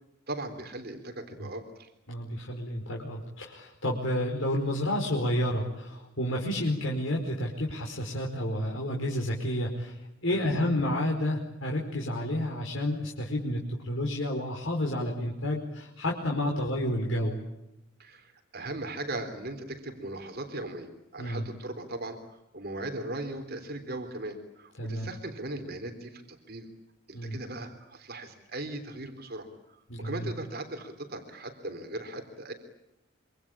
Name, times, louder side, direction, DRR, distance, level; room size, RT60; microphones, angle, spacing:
voice 1, 0.3-1.9 10.3-10.6 16.5-16.7 18.0-26.7 27.1-29.5 30.0-32.5, right 2 dB, 50° right, 6 dB, 3.6 m, -38 dB
voice 2, 2.1-9.9 10.2-17.4 21.2-21.4 24.8-25.1 27.1-27.4 29.9-30.3, left 1 dB, 80° left, 0 dB, 4.9 m, -30 dB
26.5 x 25.5 x 8.8 m, 0.90 s
head